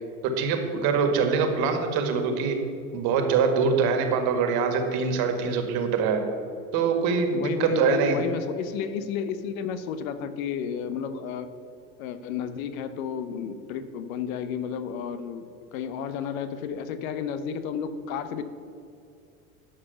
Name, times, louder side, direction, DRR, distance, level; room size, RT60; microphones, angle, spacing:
voice 1, 0.2-2.6 2.9-6.2 6.7-8.2, right 5 dB, 60° right, 6 dB, 1.9 m, -24 dB
voice 2, 7.3-11.5 12.0-18.4, left 7 dB, 70° left, 11 dB, 1.0 m, -32 dB
12.0 x 5.7 x 7.0 m, 2.5 s
hypercardioid pair, 85°, 42 cm